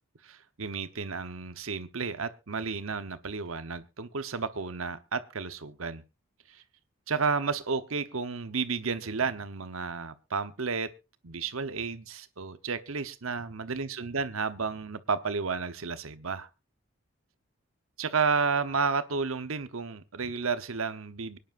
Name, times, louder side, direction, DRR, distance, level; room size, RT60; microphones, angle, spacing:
voice 1, 0.2-6.0 6.5-6.6 7.1-10.9 11.2-16.5 18.0-21.4, right 5 dB, 80° right, 1.0 m, -32 dB
24.5 x 10.0 x 2.5 m
head